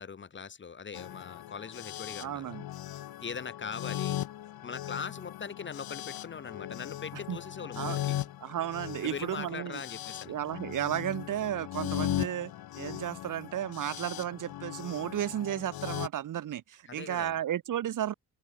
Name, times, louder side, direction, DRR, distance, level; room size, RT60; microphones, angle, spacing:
voice 1, 0.0-2.6 3.2-4.2 4.6-8.2 9.0-10.3 16.9-17.4, left 6 dB, 30° left, 2.7 m, -41 dB
sound 1, 0.9-16.1, left 13 dB, 80° left, 5.3 m, -38 dB
voice 2, 2.2-2.6 7.3-7.4 7.8-8.0 8.4-9.8 10.3-18.1, right 11 dB, 60° right, 1.9 m, -33 dB
open air
cardioid pair, 140°, 36 cm